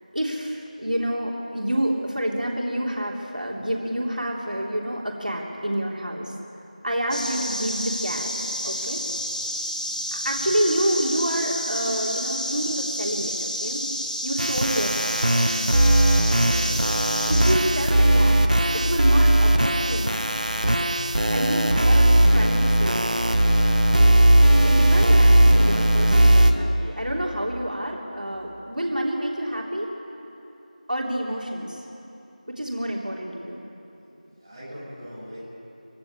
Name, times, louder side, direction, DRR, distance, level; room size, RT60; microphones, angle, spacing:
voice 1, 0.1-6.3 6.8-8.3 8.6-9.0 10.1-13.9 14.2-15.2 17.3-18.4 18.7-20.4 21.3-23.7 24.6-29.9 30.9-31.8 32.5-33.6, equal, 80° right, -2 dB, 3.3 m, -28 dB
sound 1, 7.1-17.5, equal, 70° left, 3.5 m, -30 dB
sound 2, 14.4-26.5, right 1 dB, 65° right, 1.5 m, -18 dB
voice 2, 16.3-16.7 34.3-35.5, equal, 20° right, -9 dB, 6.4 m, -41 dB
23.5 x 17.0 x 8.6 m, 3.0 s
figure-of-eight pair, 175°, 5 cm